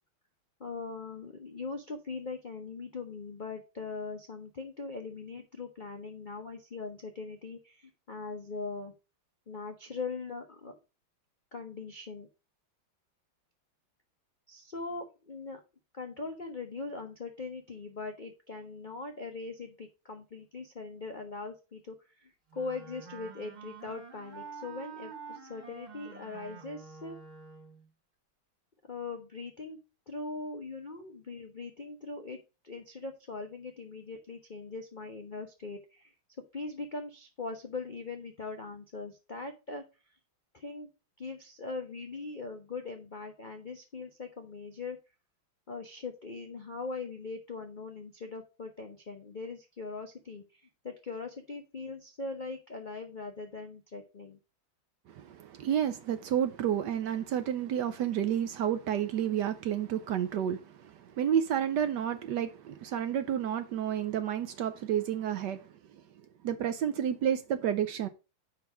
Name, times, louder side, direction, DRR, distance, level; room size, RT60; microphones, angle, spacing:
voice 1, 0.6-8.9 9.5-10.7 11.5-12.3 14.5-15.6 15.9-27.2 28.9-29.8 30.1-36.1 36.5-39.8 40.5-40.9 41.2-45.0 45.7-54.4, left 3 dB, 55° left, 0.5 m, -41 dB
Wind instrument woodwind instrument, 22.5-27.9, right 5 dB, 30° right, 0.9 m, -47 dB
voice 2, 55.1-65.7 66.4-68.1, right 9 dB, 70° right, 1.1 m, -30 dB
5.5 x 4.7 x 5.9 m
omnidirectional pair, 2.2 m